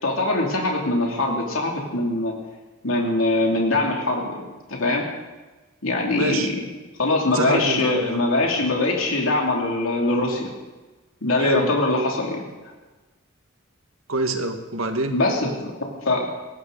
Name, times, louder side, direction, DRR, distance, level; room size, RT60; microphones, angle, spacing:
voice 1, 0.0-2.3 2.8-4.3 4.7-5.0 5.8-6.5 7.0-10.5 11.2-12.4 15.1-16.3, left 2 dB, 85° left, -1 dB, 2.8 m, -22 dB
voice 2, 6.1-6.5 7.3-8.3 11.4-11.7 14.1-15.2, right 2 dB, 90° right, 5 dB, 1.7 m, -26 dB
20.0 x 17.0 x 4.0 m, 1.2 s
head